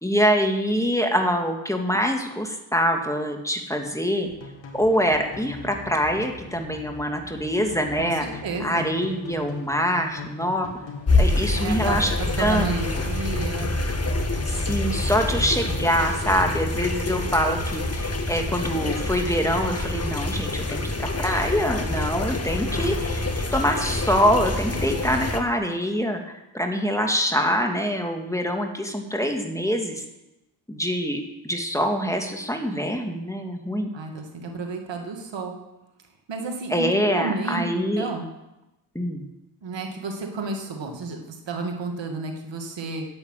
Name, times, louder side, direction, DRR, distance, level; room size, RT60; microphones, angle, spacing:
voice 1, 0.0-4.3 4.7-8.3 8.6-10.7 11.2-12.7 14.5-23.2 23.5-30.0 30.7-33.9 36.7-38.0 38.9-39.2, equal, 5° left, 3 dB, 2.2 m, -24 dB
sound 1, 4.2-20.4, left 3 dB, 65° left, 2.3 m, -40 dB
voice 2, 8.4-8.9 11.6-13.8 33.9-35.6 36.3-38.3 39.6-43.1, right 3 dB, 65° right, 3 dB, 2.2 m, -31 dB
sound 2, 11.1-25.4, left 2 dB, 30° left, 1.8 m, -26 dB
8.8 x 7.8 x 9.1 m, 0.94 s
supercardioid pair, 50°, 47 cm